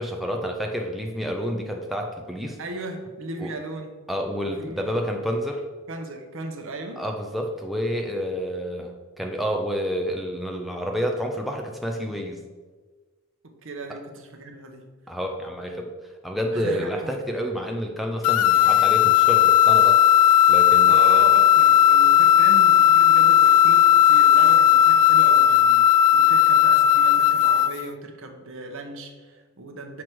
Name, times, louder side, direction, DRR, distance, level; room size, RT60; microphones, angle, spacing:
voice 1, 0.0-2.6 3.4-3.5 4.1-5.6 7.0-12.4 13.9-14.0 15.1-15.9 16.2-20.0 20.5-21.3, equal, ahead, 1 dB, 0.4 m, -29 dB
voice 2, 2.6-3.9 4.6-5.0 5.9-7.0 13.4-14.9 16.5-17.1 20.8-25.8 26.1-30.0, right 2 dB, 60° right, 4 dB, 0.9 m, -37 dB
sound 1, 18.2-27.8, left 11 dB, 75° left, 0.3 m, -16 dB
6.1 x 4.7 x 4.6 m, 1.4 s
head